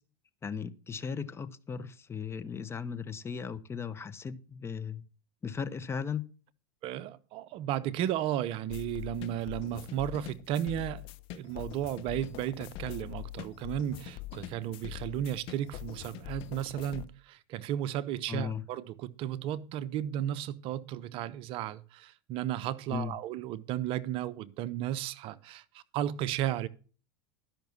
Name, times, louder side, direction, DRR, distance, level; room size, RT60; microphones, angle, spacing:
voice 1, 0.4-5.0 5.4-6.2 18.3-18.6 22.9-23.2, left 6 dB, 20° left, 0.9 m, -37 dB
voice 2, 6.8-11.0 11.3-26.7, right 11 dB, 50° right, 0.7 m, -34 dB
sound 1, 8.7-17.0, left 15 dB, 50° left, 0.8 m, -43 dB
12.0 x 5.8 x 7.0 m
hypercardioid pair, 95°, 12 cm